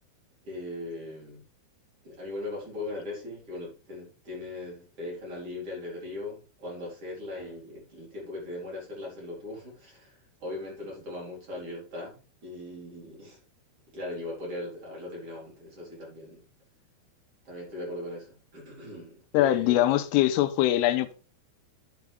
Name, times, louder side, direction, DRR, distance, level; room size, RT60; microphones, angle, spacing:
voice 1, 0.5-1.4 2.0-13.4 13.9-16.4 17.4-19.9, left 2 dB, 30° right, 4.8 m, -39 dB
voice 2, 19.3-21.1, left 13 dB, 85° left, 3.2 m, -23 dB
9.4 x 7.2 x 3.5 m
omnidirectional pair, 6.0 m